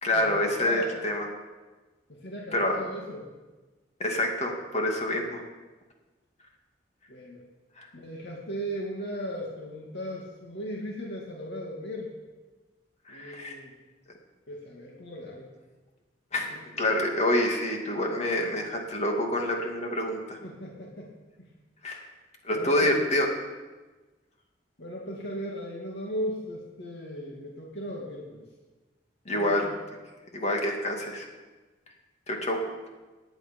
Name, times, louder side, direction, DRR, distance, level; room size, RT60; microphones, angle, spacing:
voice 1, 0.0-1.3 2.5-2.8 4.0-5.4 7.8-7.9 13.1-13.6 16.3-16.5 16.8-20.4 21.8-22.0 22.4-23.3 29.3-29.6 30.3-31.3 32.3-32.6, left 1 dB, 40° left, 1 dB, 2.4 m, -27 dB
voice 2, 0.6-0.9 2.1-3.3 7.1-7.4 7.9-12.1 13.1-13.7 14.5-15.5 16.5-16.9 20.4-21.1 21.4-21.5 22.5-22.9 24.8-28.4 29.3-29.7, equal, 65° left, -2 dB, 2.3 m, -37 dB
18.0 x 9.9 x 5.4 m, 1.2 s
head